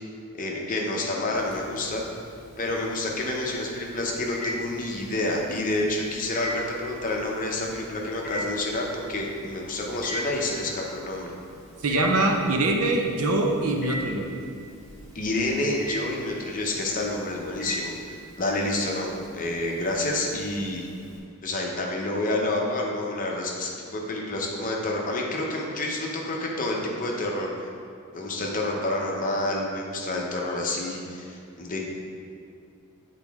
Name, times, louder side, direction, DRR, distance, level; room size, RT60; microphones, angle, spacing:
voice 1, 0.3-2.0 2.6-11.3 15.1-19.1 19.3-20.9 21.4-27.7 28.1-31.8, left 2 dB, 35° left, -1 dB, 0.8 m, -28 dB
Telephone, 1.3-21.2, equal, ahead, 1.5 m, -41 dB
voice 2, 11.8-14.3, right 2 dB, 75° right, 2 dB, 0.7 m, -23 dB
8.0 x 4.1 x 3.6 m, 2.3 s
head